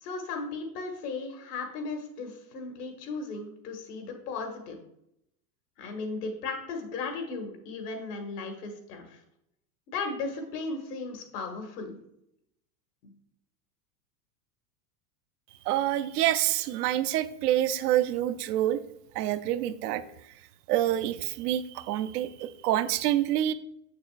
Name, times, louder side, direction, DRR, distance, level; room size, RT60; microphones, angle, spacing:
voice 1, 0.0-4.8 5.8-9.2 9.9-12.0 13.0-13.1, left 4 dB, 75° left, 4 dB, 1.7 m, -36 dB
voice 2, 15.7-18.8 19.1-20.0 20.7-23.5, right 13 dB, 70° right, 12 dB, 0.6 m, -27 dB
6.7 x 6.5 x 2.4 m, 0.79 s
supercardioid pair, 135°, 48 cm